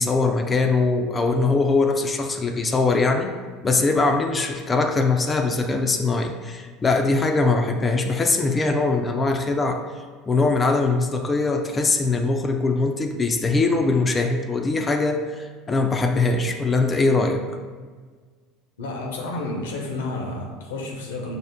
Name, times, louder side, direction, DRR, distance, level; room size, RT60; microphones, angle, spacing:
voice 1, 0.0-3.3 3.6-9.8 10.3-17.4, left 3 dB, 25° left, 5 dB, 0.4 m, -22 dB
voice 2, 18.8-21.4, left 2 dB, 85° left, 1 dB, 0.7 m, -30 dB
4.9 x 2.1 x 3.4 m, 1.5 s
hypercardioid pair, 85°, 0 cm